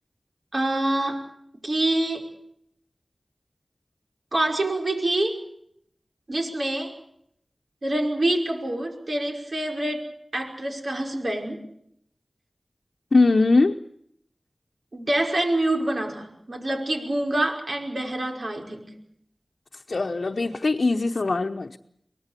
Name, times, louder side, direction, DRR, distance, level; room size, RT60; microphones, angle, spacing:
voice 1, 0.5-1.3 1.6-2.3 4.3-5.4 6.3-6.9 7.8-10.1 10.3-11.6 14.9-19.0, right 1 dB, 65° right, 2 dB, 5.5 m, -26 dB
voice 2, 13.1-13.8 19.9-21.8, left 3 dB, 75° left, 3 dB, 0.9 m, -21 dB
24.0 x 18.5 x 8.3 m, 0.72 s
wide cardioid pair, 40°, 0 cm